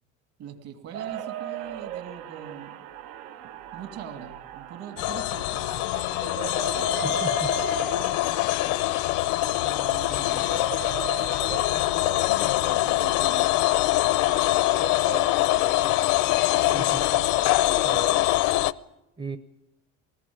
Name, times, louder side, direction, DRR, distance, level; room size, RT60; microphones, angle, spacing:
voice 1, 0.4-2.8 3.7-5.6 9.3-10.7 11.5-13.5, right 7 dB, 55° right, 6 dB, 2.8 m, -42 dB
sound 1, 0.9-18.4, right 10 dB, 80° right, 1.3 m, -38 dB
sound 2, 5.0-18.7, left 18 dB, 75° left, 0.7 m, -24 dB
voice 2, 7.0-7.5 16.7-17.0 17.3-18.1 19.2-19.4, right 3 dB, 15° right, 9 dB, 0.7 m, -36 dB
21.0 x 19.5 x 8.8 m, 0.91 s
cardioid pair, 165°, 30 cm